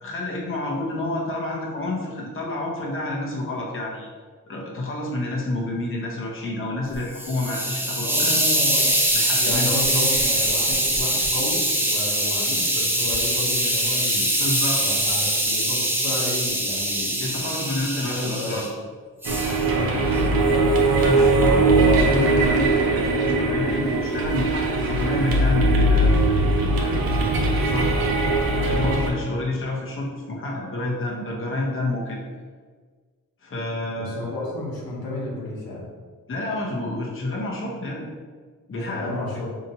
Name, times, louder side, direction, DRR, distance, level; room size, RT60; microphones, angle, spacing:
voice 1, 0.0-4.1 4.5-8.4 9.1-9.8 14.4-15.0 17.2-18.7 21.0-28.0 28.6-32.2 33.4-34.4 36.3-38.1 38.7-39.2, left 2 dB, 35° left, -2 dB, 0.8 m, -29 dB
Hiss, 6.9-18.7 19.2-19.6, right 1 dB, 5° right, 0.6 m, -23 dB
voice 2, 8.0-9.0 9.4-14.3 14.8-17.5 17.9-18.6 19.6-20.9 33.9-35.9 38.9-39.5, left 2 dB, 85° left, -4 dB, 1.0 m, -32 dB
sound 1, 19.2-29.1, right 2 dB, 80° right, 0.7 m, -20 dB
4.0 x 2.9 x 2.7 m, 1.5 s
cardioid pair, 80°, 35 cm